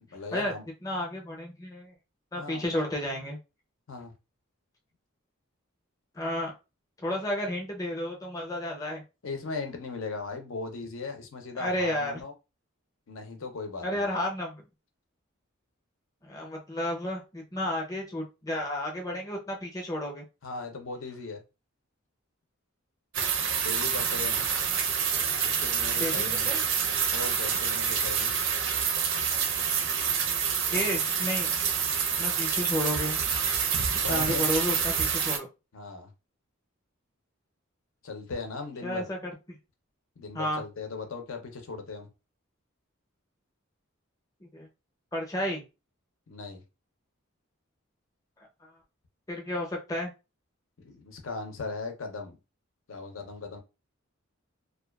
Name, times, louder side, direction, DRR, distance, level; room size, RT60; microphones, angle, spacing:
voice 1, 0.1-0.6 2.3-2.7 3.9-4.1 9.2-12.3 13.1-14.1 20.4-21.4 23.5-24.5 25.4-26.5 27.1-28.3 34.0-34.5 35.7-36.1 38.0-39.0 40.2-42.1 46.3-46.6 50.8-52.4 52.9-53.6, left 4 dB, 70° left, 0.6 m, -38 dB
voice 2, 0.8-1.9 2.3-3.4 6.1-6.5 7.0-9.0 11.6-12.2 13.8-14.6 16.2-20.2 26.0-26.6 30.7-31.5 32.2-33.2 34.1-35.5 38.8-39.3 40.3-40.6 44.4-44.7 45.1-45.6 49.3-50.1, left 1 dB, 15° left, 0.6 m, -32 dB
sound 1, 23.1-35.4, right 7 dB, 60° right, 0.4 m, -27 dB
2.4 x 2.3 x 2.2 m
head